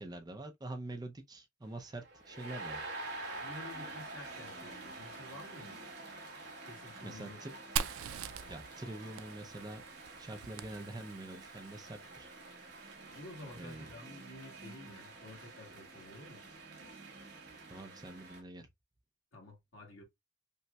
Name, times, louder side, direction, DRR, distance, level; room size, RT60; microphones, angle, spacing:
voice 1, 0.0-2.9 7.0-7.5 8.5-9.8 10.2-12.3 13.6-13.9 17.7-18.7, right 2 dB, 20° right, 0.4 m, -45 dB
sound 1, 1.7-18.4, right 2 dB, 55° right, 1.2 m, -48 dB
voice 2, 3.4-5.8 6.7-7.4 13.1-16.4 19.3-20.0, left 2 dB, 75° left, 1.4 m, -51 dB
Fire, 7.8-11.4, right 8 dB, 90° right, 0.3 m, -41 dB
5.3 x 2.1 x 2.2 m
head